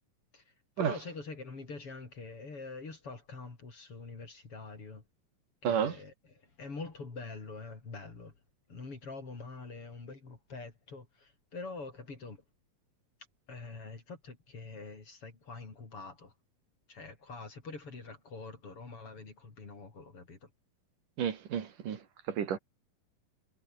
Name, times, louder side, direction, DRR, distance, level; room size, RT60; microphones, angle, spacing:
voice 1, 0.3-5.0 5.6-8.3 8.7-12.4 13.5-16.3 16.9-20.5, left 3 dB, 40° left, 5.2 m, -45 dB
voice 2, 5.6-6.0 21.2-22.6, right 8 dB, 65° right, 3.9 m, -32 dB
omnidirectional pair, 4.1 m